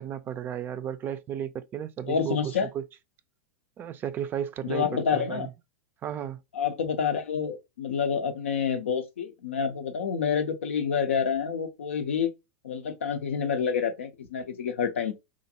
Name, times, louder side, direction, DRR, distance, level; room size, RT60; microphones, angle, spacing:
voice 1, 0.0-2.8 3.8-5.5 6.0-6.4, right 9 dB, 30° right, 0.3 m, -34 dB
voice 2, 2.1-2.7 4.6-5.5 6.6-12.3 12.6-15.1, left 6 dB, 85° left, 0.5 m, -28 dB
2.5 x 2.2 x 2.7 m
hypercardioid pair, 105°, 7 cm